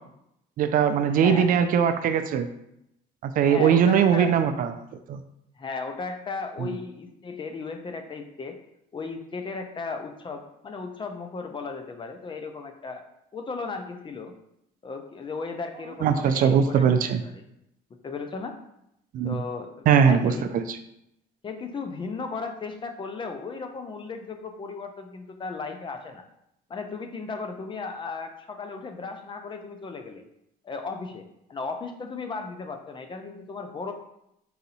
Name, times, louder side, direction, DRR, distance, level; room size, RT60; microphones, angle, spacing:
voice 1, 0.6-2.5 3.2-4.7 5.1-5.2 16.0-17.2 19.1-19.4 19.9-20.8, right 7 dB, 55° right, 8 dB, 0.4 m, -21 dB
voice 2, 1.1-1.5 3.4-4.4 5.6-8.6 8.9-13.0 13.3-14.3 14.8-17.4 18.0-18.6 19.2-20.5 21.4-26.2 26.7-30.2 30.6-33.9, left 4 dB, 30° left, 6 dB, 0.5 m, -35 dB
4.1 x 2.7 x 4.0 m, 0.79 s
cardioid pair, 110°, 17 cm